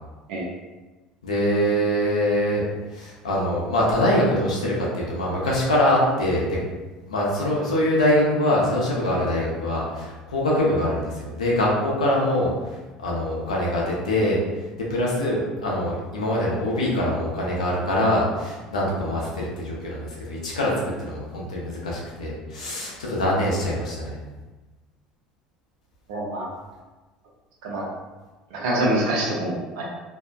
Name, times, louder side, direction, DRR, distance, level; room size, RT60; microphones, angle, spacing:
voice 1, 1.2-2.6 2.9-6.6 7.1-24.2, left 1 dB, 85° left, -4 dB, 0.6 m, -24 dB
voice 2, 26.1-26.5 27.6-27.8 28.5-29.8, right 1 dB, 70° right, -3 dB, 0.7 m, -25 dB
2.7 x 2.1 x 2.4 m, 1.2 s
hypercardioid pair, 65°, 4 cm